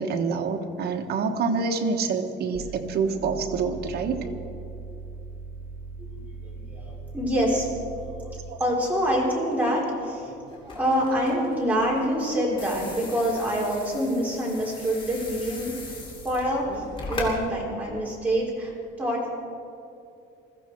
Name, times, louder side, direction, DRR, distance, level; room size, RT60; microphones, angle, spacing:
voice 1, 0.0-4.3 8.5-8.6, right 5 dB, 55° right, 4 dB, 1.3 m, -27 dB
sound 1, 2.5-8.7, right 4 dB, 40° right, 2.0 m, -39 dB
voice 2, 6.0-8.1 8.6-15.7 16.2-18.7 19.0-19.3, equal, 10° right, -5 dB, 3.6 m, -26 dB
sound 2, 10.5-17.3, left 2 dB, 25° left, 2.7 m, -39 dB
21.5 x 14.5 x 4.5 m, 2.6 s
cardioid pair, 170°, 19 cm